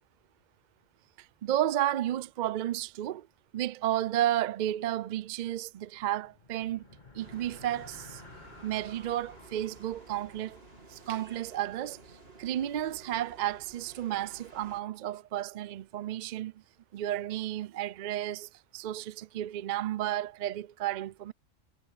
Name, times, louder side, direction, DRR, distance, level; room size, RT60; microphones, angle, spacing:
voice 1, 1.4-3.3 3.5-6.8 7.1-8.2 8.6-10.6 10.9-12.0 12.4-16.5 16.9-21.3, right 12 dB, 70° right, 0.4 m, -32 dB
sound 1, 6.2-11.8, left 3 dB, 35° left, 2.7 m, -54 dB
sound 2, 7.2-14.8, right 3 dB, 50° right, 3.3 m, -53 dB
omnidirectional pair, 1.4 m